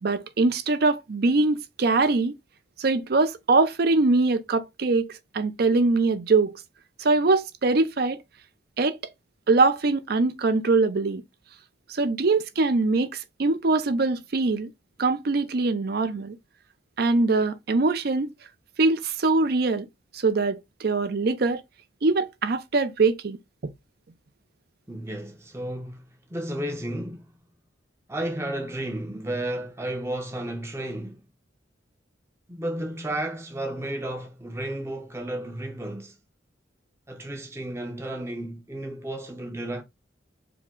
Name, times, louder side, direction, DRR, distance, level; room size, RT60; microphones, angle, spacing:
voice 1, 0.0-2.3 2.8-6.6 7.0-8.2 8.8-9.0 9.5-11.2 11.9-14.7 15.0-16.4 17.0-18.3 18.8-19.9 20.1-21.6 22.0-23.4, right 3 dB, 55° right, 0.5 m, -23 dB
voice 2, 24.9-27.3 28.1-31.2 32.5-36.2 37.1-39.8, right 1 dB, 15° right, 0.6 m, -33 dB
4.8 x 2.1 x 3.6 m
head